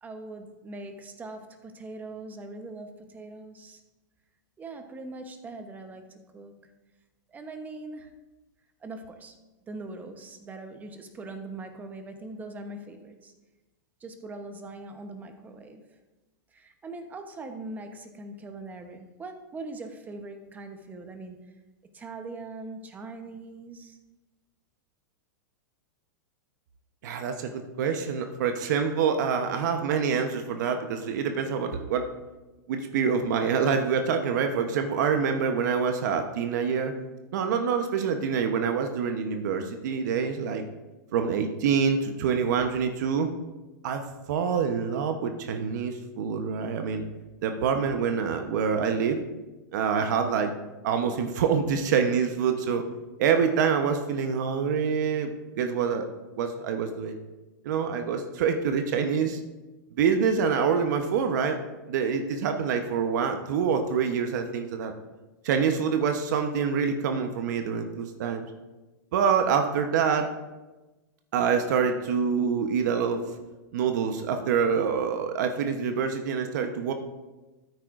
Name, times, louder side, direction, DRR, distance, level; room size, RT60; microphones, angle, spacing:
voice 1, 0.0-3.8 4.6-6.7 7.3-8.2 8.8-9.4 9.7-13.3 14.0-16.0 16.5-21.6 21.9-24.0, right 2 dB, 15° right, 6 dB, 0.9 m, -41 dB
voice 2, 27.0-32.1 32.7-36.9 37.3-40.6 41.1-43.3 43.8-47.0 47.4-49.2 49.7-50.5 50.8-52.8 53.2-56.1 56.4-57.2 57.6-59.4 60.0-61.6 61.9-64.9 65.4-68.5 69.1-70.3 71.3-73.2 73.7-76.9, right 6 dB, 65° right, 6 dB, 0.9 m, -26 dB
13.5 x 9.3 x 2.5 m, 1.1 s
hypercardioid pair, 135°, 11 cm